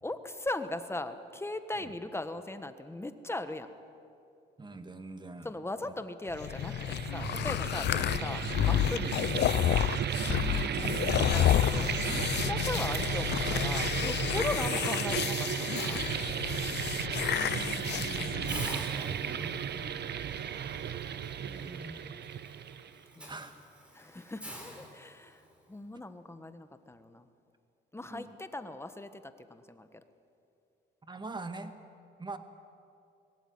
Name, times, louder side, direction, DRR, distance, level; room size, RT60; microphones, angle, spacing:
voice 1, 0.0-3.7 5.4-9.8 11.3-16.3 19.7-20.2 23.2-23.3 23.9-25.4 25.7-27.3 27.9-30.0, left 2 dB, 10° left, 10 dB, 1.4 m, -39 dB
voice 2, 4.6-5.5 5.9-6.0 8.1-8.2 10.4-11.1 12.7-13.0 17.2-19.6 21.4-22.1 23.2-23.6 28.1-28.4 31.1-31.7 32.2-32.4, right 3 dB, 20° right, 8 dB, 1.9 m, -44 dB
sound 1, 6.3-18.7, left 12 dB, 60° left, 0.5 m, -30 dB
sound 2, 6.3-23.0, right 8 dB, 55° right, 1.0 m, -34 dB
Hiss, 15.8-16.9 17.3-17.6 17.9-18.0 18.5-25.5, equal, 5° right, 4.9 m, -47 dB
21.5 x 16.5 x 9.7 m, 2.6 s
cardioid pair, 90°, 20 cm